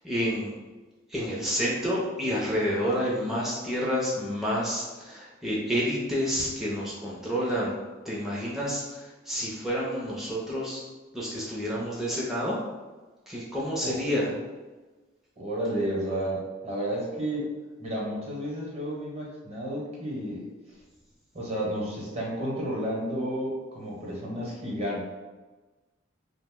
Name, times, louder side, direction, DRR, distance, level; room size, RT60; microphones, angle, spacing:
voice 1, 0.0-0.5 1.1-7.7 8.0-10.8 11.1-12.6 13.3-14.3, equal, ahead, -6 dB, 0.4 m, -29 dB
voice 2, 15.4-17.5 17.8-20.5 21.3-25.1, right 1 dB, 30° right, -4 dB, 0.8 m, -31 dB
2.7 x 2.0 x 3.4 m, 1.2 s
head